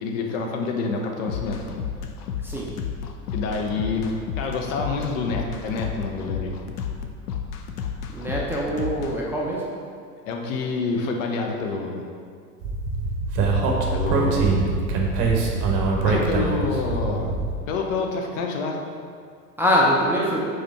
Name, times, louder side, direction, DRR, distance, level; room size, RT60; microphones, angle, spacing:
voice 1, 0.0-1.6 3.3-4.1 4.4-6.5 10.3-12.0 13.9-14.6 16.0-17.4 17.7-18.8, left 4 dB, 55° left, 2 dB, 0.9 m, -27 dB
sound 1, 1.3-9.1, left 7 dB, 75° left, 0.6 m, -32 dB
voice 2, 8.1-9.6 19.6-20.4, equal, 5° right, -5 dB, 0.6 m, -23 dB
Speech, 12.6-17.5, right 3 dB, 40° right, 1.1 m, -23 dB
5.0 x 4.2 x 4.5 m, 2.2 s
figure-of-eight pair, 85°, 48 cm